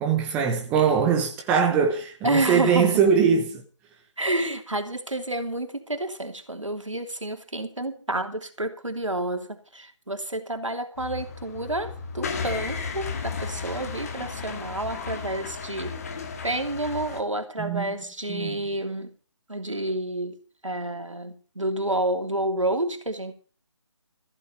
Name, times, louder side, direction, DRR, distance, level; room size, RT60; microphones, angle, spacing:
voice 1, 0.0-3.6 17.6-17.9 18.3-18.6, right 6 dB, 10° right, 1.0 m, -22 dB
voice 2, 2.2-2.9 4.2-16.0 16.4-19.1 19.5-23.3, right 1 dB, 80° right, 3.0 m, -29 dB
sound 1, 11.0-17.2, left 5 dB, 30° left, 2.3 m, -34 dB
14.5 x 8.6 x 7.2 m
figure-of-eight pair, 155°, 16 cm